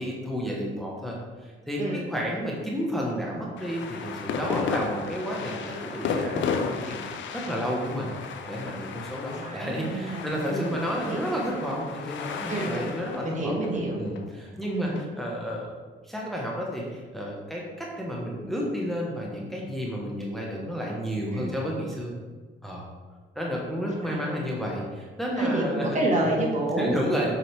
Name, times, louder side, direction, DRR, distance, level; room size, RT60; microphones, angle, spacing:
voice 1, 0.0-8.1 8.5-13.6 14.0-15.7 16.0-22.1 22.6-22.8 23.3-26.0 26.8-27.3, equal, ahead, -3 dB, 1.3 m, -31 dB
sound 1, 3.6-15.0, left 6 dB, 70° left, 0.7 m, -34 dB
voice 2, 9.2-10.2 10.5-10.7 11.0-11.3 12.5-12.9 13.2-14.0 14.6-15.0 21.3-21.5 23.7-24.4 25.4-27.0, right 1 dB, 35° right, -1 dB, 1.6 m, -29 dB
7.7 x 4.9 x 3.5 m, 1.4 s
cardioid pair, 90°, 20 cm